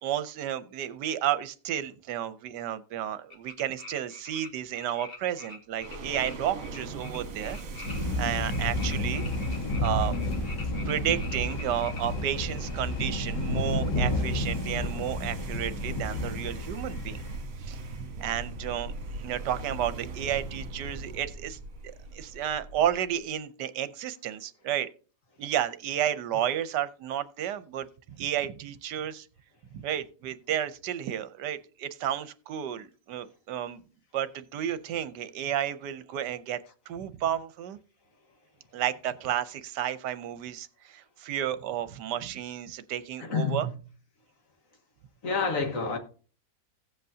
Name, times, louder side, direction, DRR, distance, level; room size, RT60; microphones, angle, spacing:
voice 1, 0.0-9.3 9.5-10.2 10.7-17.2 17.6-17.8 18.2-24.9 25.4-27.9 28.2-29.3 29.7-33.8 34.1-36.6 36.9-37.8 38.7-43.7, right 10 dB, 75° right, 1.2 m, -32 dB
sound 1, 3.3-4.5 4.7-12.0, left 3 dB, 35° left, 1.8 m, -45 dB
sound 2, 5.8-23.2, right 3 dB, 50° right, 1.7 m, -40 dB
sound 3, 7.8-17.4, left 1 dB, 80° left, 2.3 m, -31 dB
voice 2, 43.2-43.7 45.2-46.0, left 4 dB, 50° left, 1.6 m, -28 dB
16.0 x 7.9 x 2.7 m
omnidirectional pair, 1.9 m